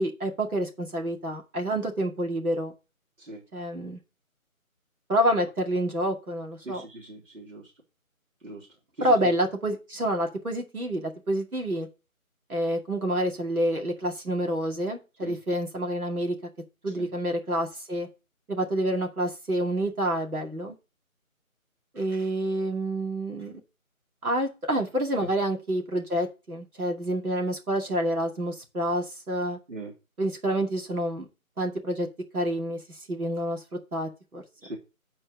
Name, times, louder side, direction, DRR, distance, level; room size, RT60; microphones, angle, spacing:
voice 1, 0.0-2.7 3.5-4.0 5.1-6.8 9.0-11.9 12.5-16.4 16.8-18.1 18.5-20.8 21.9-23.6 24.2-29.6 30.2-31.3 31.6-32.1 32.3-32.8 33.1-33.6 33.9-34.4, right 1 dB, 80° right, 2 dB, 2.4 m, -28 dB
voice 2, 6.6-7.7 8.4-8.7 9.0-9.3 15.2-15.4 16.9-17.1 25.2-25.3 29.7-29.9 34.6-34.8, right 2 dB, 60° right, -3 dB, 3.2 m, -40 dB
7.7 x 4.4 x 6.2 m, 0.30 s
figure-of-eight pair, 160°, 43 cm